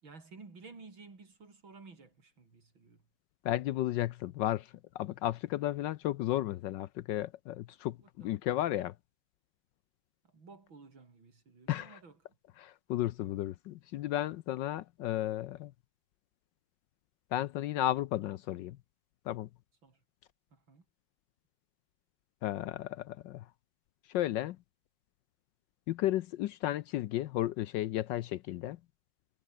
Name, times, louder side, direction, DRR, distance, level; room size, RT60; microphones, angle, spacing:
voice 1, 0.0-3.0 8.0-8.4 10.2-12.2 19.8-20.0 20.5-20.8, right 4 dB, 85° right, 4.9 m, -54 dB
voice 2, 3.4-8.9 11.7-12.0 12.6-15.7 17.3-18.8 19.3-19.5 22.4-23.4 24.1-24.6 25.9-28.8, left 14 dB, 75° left, 1.2 m, -33 dB
omnidirectional pair, 2.1 m